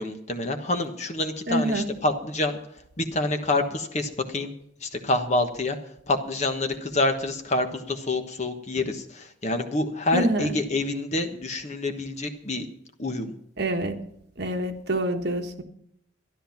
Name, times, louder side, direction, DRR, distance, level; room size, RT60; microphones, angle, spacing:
voice 1, 0.0-2.6 3.0-4.5 4.8-5.8 6.1-12.7 13.0-13.3, left 2 dB, 35° left, 6 dB, 1.3 m, -27 dB
voice 2, 1.5-1.9 10.1-10.5 13.6-14.0 14.4-15.6, right 1 dB, 55° right, 5 dB, 1.5 m, -26 dB
13.0 x 11.5 x 5.8 m, 0.74 s
head